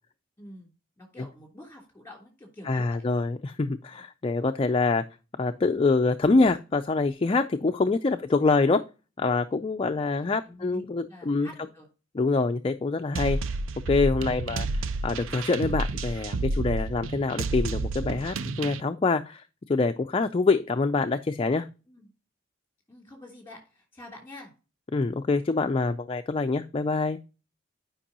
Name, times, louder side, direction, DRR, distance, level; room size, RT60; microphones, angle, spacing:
voice 1, 0.4-3.1 8.5-8.6 9.9-11.9 21.9-22.1 22.9-24.5, left 1 dB, 10° left, 0 dB, 3.0 m, -47 dB
voice 2, 2.7-5.0 5.4-8.8 9.2-11.5 12.1-13.4 13.9-21.7 24.9-27.2, left 3 dB, 25° left, 7 dB, 0.4 m, -25 dB
sound 1, 13.2-18.8, right 2 dB, 75° right, 0.5 m, -30 dB
9.9 x 5.3 x 2.8 m, 0.32 s
head